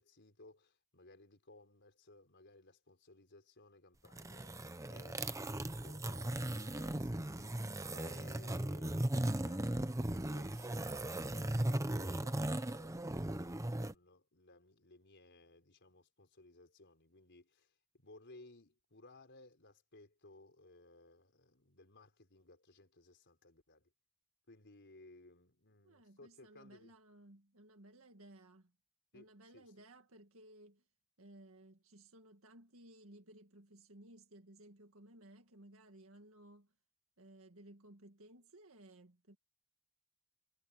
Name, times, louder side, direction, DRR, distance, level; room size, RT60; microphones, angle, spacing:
voice 1, 0.0-7.6 7.9-11.1 11.3-23.9 24.5-27.0 29.1-29.7, left 2 dB, 55° left, 4.7 m, -61 dB
sound 1, 4.0-13.9, right 1 dB, 15° right, 0.9 m, -38 dB
voice 2, 25.8-28.7 29.1-30.8 31.2-36.7 37.2-39.4, right 1 dB, 70° right, 2.0 m, -59 dB
head